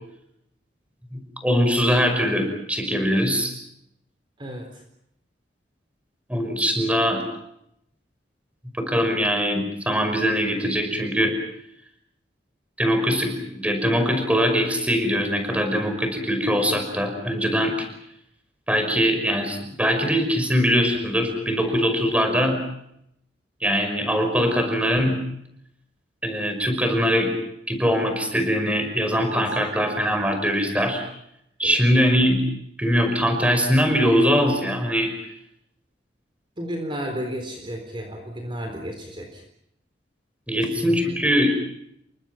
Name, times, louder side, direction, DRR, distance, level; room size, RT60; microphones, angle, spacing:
voice 1, 1.1-3.5 6.3-7.2 8.8-11.4 12.8-17.9 18.7-22.6 23.6-25.2 26.2-27.3 27.7-31.0 31.6-32.4 32.8-35.1 40.5-41.5, equal, 10° right, 6 dB, 5.7 m, -22 dB
voice 2, 4.4-4.8 29.2-29.4 31.6-31.8 36.6-39.4 40.5-41.0, equal, 30° right, 4 dB, 4.0 m, -33 dB
29.5 x 24.5 x 6.0 m, 0.76 s
head